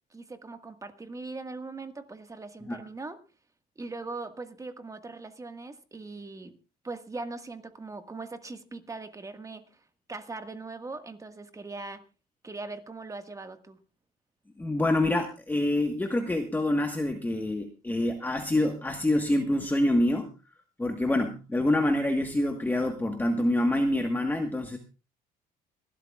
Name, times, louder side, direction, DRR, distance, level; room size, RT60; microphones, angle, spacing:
voice 1, 0.1-3.2 3.7-6.6 6.8-9.8 10.1-12.0 12.4-13.8, right 3 dB, 20° right, 8 dB, 1.6 m, -40 dB
voice 2, 14.6-20.3 20.8-24.8, left 1 dB, 10° left, 4 dB, 1.3 m, -26 dB
25.5 x 12.5 x 2.4 m, 0.31 s
cardioid pair, 110°, 17 cm